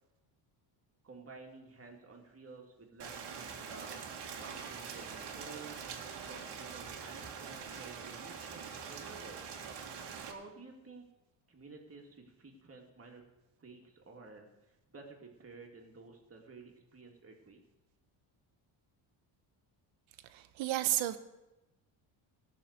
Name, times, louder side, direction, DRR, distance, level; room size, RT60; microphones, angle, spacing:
voice 1, 1.0-4.0 4.4-5.8 6.2-9.5 10.3-11.1 11.5-13.2 13.6-17.6, right 3 dB, 30° right, 2 dB, 2.6 m, -52 dB
Rain, 3.0-10.3, right 6 dB, 55° right, 2.0 m, -44 dB
voice 2, 20.3-21.2, right 14 dB, 75° right, 11 dB, 1.1 m, -32 dB
16.0 x 6.7 x 6.7 m, 1.0 s
cardioid pair, 105°, 47 cm